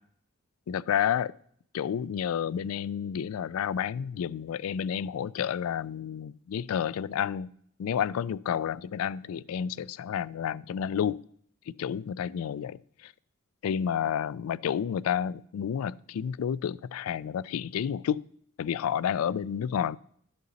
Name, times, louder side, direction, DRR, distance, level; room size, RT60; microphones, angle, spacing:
voice 1, 0.7-1.3 1.7-7.5 7.8-11.2 11.7-13.1 13.6-18.2 18.6-20.0, left 8 dB, 75° left, 0.3 m, -30 dB
12.0 x 6.6 x 4.0 m
head